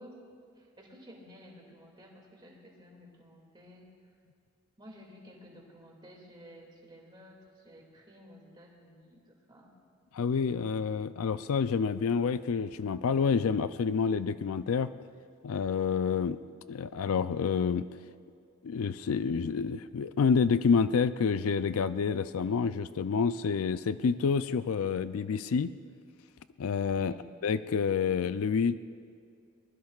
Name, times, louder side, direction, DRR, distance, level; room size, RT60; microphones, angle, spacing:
voice 1, 0.0-3.9 4.8-9.7 26.9-27.3, equal, 20° right, -1 dB, 2.3 m, -53 dB
voice 2, 10.1-14.9 15.4-16.4 16.7-17.9 18.6-25.7 26.6-27.1 27.4-28.8, left 6 dB, 75° left, 13 dB, 0.4 m, -28 dB
23.0 x 20.5 x 2.4 m, 2.3 s
head